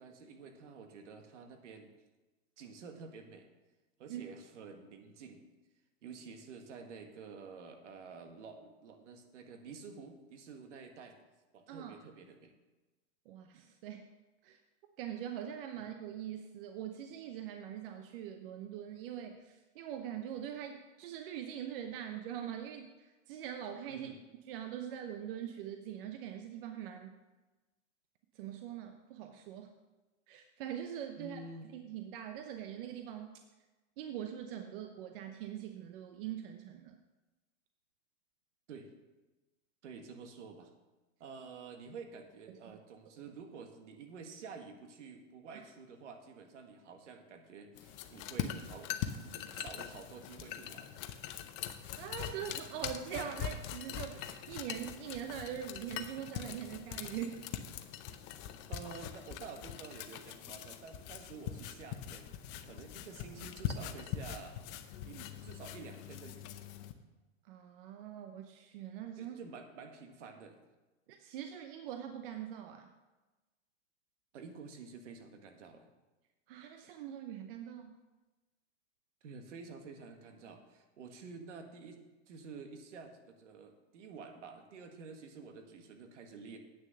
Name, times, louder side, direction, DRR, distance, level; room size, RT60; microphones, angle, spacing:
voice 1, 0.0-1.9 2.6-3.5 4.0-5.4 6.0-11.2 11.5-12.5 15.7-15.8 23.9-24.2 31.2-31.7 38.7-38.9 39.8-40.7 41.2-48.9 49.2-50.9 58.7-64.6 65.0-66.5 69.2-70.6 74.3-75.9 79.2-82.0 82.3-86.6, right 5 dB, 70° right, 5 dB, 1.7 m, -50 dB
voice 2, 11.7-12.0 13.3-14.1 14.4-14.6 15.0-24.1 24.5-27.2 28.3-29.7 30.3-31.4 31.7-33.4 34.0-37.0 42.5-42.8 45.5-45.6 51.9-57.3 67.4-69.4 71.1-72.9 76.5-77.9, right 9 dB, 45° right, 5 dB, 0.8 m, -43 dB
sound 1, 47.8-66.9, left 10 dB, 30° left, 0.6 m, -42 dB
9.0 x 6.7 x 6.6 m, 1.1 s
hypercardioid pair, 140°, 37 cm